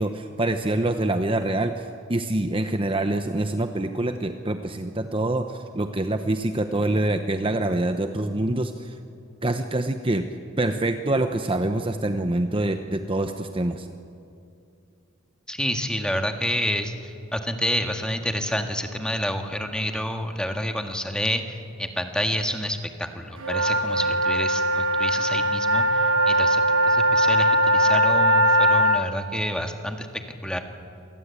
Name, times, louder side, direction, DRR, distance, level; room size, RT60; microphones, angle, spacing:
voice 1, 0.0-8.9 9.4-10.3 10.6-13.9, right 1 dB, 25° right, 7 dB, 0.9 m, -25 dB
voice 2, 15.5-30.6, equal, 5° left, 5 dB, 1.7 m, -29 dB
sound 1, 23.4-29.0, right 1 dB, 85° right, 1.3 m, -20 dB
26.5 x 19.0 x 8.4 m, 2.5 s
head